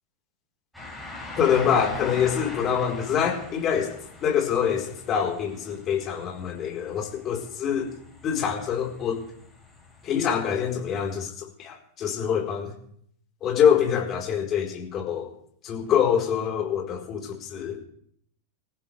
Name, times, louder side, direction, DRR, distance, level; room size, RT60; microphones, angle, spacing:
sound 1, 0.7-11.2, left 3 dB, 5° left, 7.9 m, -42 dB
voice 1, 1.4-3.9 4.2-7.9 8.2-9.2 10.0-11.3 11.6-12.7 13.4-15.3 15.6-17.8, left 8 dB, 30° left, 1 dB, 4.4 m, -25 dB
25.5 x 15.0 x 3.5 m, 0.66 s
figure-of-eight pair, 90°, 0 cm